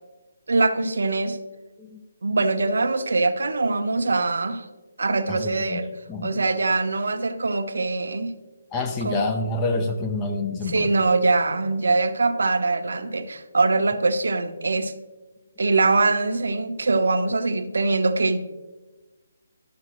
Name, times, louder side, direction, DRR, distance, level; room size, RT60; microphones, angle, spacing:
voice 1, 0.5-1.4 2.2-4.7 5.0-5.9 6.2-8.3 9.0-9.2 10.7-14.9 15.6-18.4, right 3 dB, 80° right, 8 dB, 0.7 m, -23 dB
voice 2, 5.3-5.8 6.1-6.3 8.7-11.0, left 2 dB, 15° left, 6 dB, 0.5 m, -27 dB
11.0 x 6.7 x 3.0 m, 1.2 s
hypercardioid pair, 160°, 0 cm